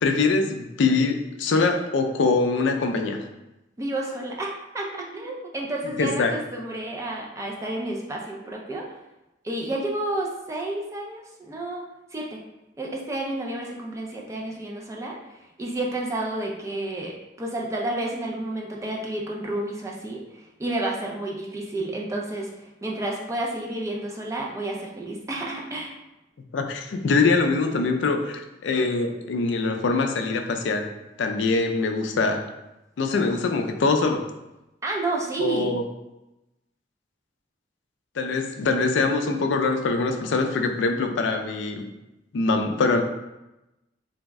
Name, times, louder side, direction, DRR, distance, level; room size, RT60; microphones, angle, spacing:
voice 1, 0.0-3.3 6.0-6.3 26.5-30.9 31.2-32.5 33.0-34.3 35.4-35.8 38.2-41.9 42.3-43.0, left 3 dB, 75° left, 5 dB, 0.4 m, -23 dB
voice 2, 3.8-8.8 9.4-11.8 12.1-12.4 12.8-25.9 34.8-35.7, right 2 dB, 15° right, -1 dB, 0.4 m, -30 dB
3.3 x 2.0 x 3.4 m, 0.96 s
head